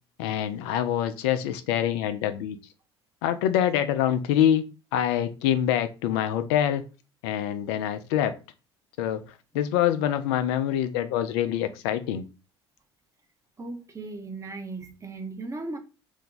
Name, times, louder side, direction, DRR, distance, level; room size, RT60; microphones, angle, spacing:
voice 1, 0.2-2.6 3.2-4.6 4.9-6.8 7.2-8.3 9.0-9.2 9.5-12.2, left 10 dB, 70° left, 0.4 m, -25 dB
voice 2, 13.6-15.8, right 3 dB, 20° right, 0.8 m, -37 dB
2.6 x 2.2 x 3.8 m
hypercardioid pair, 65°, 14 cm